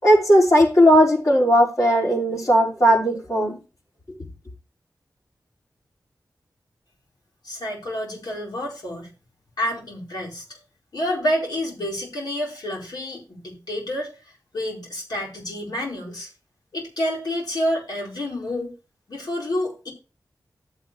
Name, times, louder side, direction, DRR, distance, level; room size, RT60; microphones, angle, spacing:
voice 1, 0.0-3.6, equal, 50° left, -3 dB, 4.9 m, -17 dB
voice 2, 7.4-9.1 9.6-10.6 10.9-14.1 14.5-16.3 16.7-18.7 19.1-19.9, left 1 dB, 85° left, -2 dB, 4.7 m, -28 dB
12.5 x 8.2 x 3.2 m, 0.32 s
wide cardioid pair, 70°, 7 cm